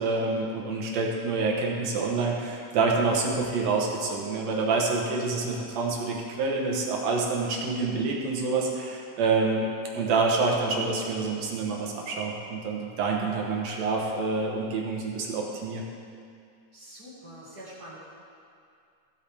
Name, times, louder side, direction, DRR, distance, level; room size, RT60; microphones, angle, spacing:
voice 1, 0.0-9.7 9.9-15.8, right 3 dB, 65° right, -1 dB, 2.1 m, -27 dB
voice 2, 16.7-18.0, equal, 35° right, -7 dB, 1.9 m, -45 dB
15.5 x 8.0 x 3.4 m, 2.4 s
omnidirectional pair, 3.6 m